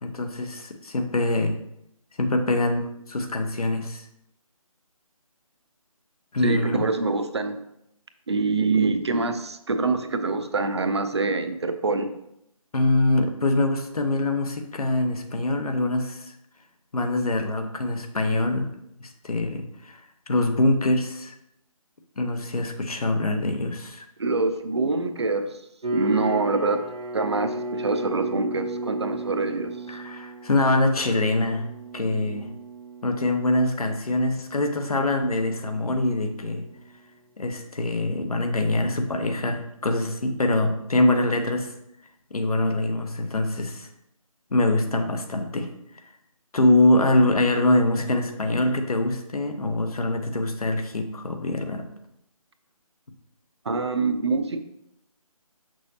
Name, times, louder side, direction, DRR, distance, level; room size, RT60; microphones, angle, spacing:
voice 1, 0.0-1.6 2.2-4.1 6.3-6.8 12.7-16.3 16.9-18.7 19.0-21.3 22.2-24.0 29.9-31.6 31.9-32.5 33.0-36.6 37.4-41.7 42.3-43.9 44.5-45.7 46.5-51.8, left 2 dB, 80° left, 5 dB, 1.0 m, -24 dB
voice 2, 6.4-7.6 8.3-12.1 24.2-25.6 25.9-26.8 27.1-29.7 53.7-54.6, right 3 dB, 45° right, 8 dB, 0.5 m, -25 dB
sound 1, 25.8-36.9, right 1 dB, 85° right, 1.0 m, -36 dB
6.1 x 5.8 x 2.8 m, 0.79 s
figure-of-eight pair, 170°, 19 cm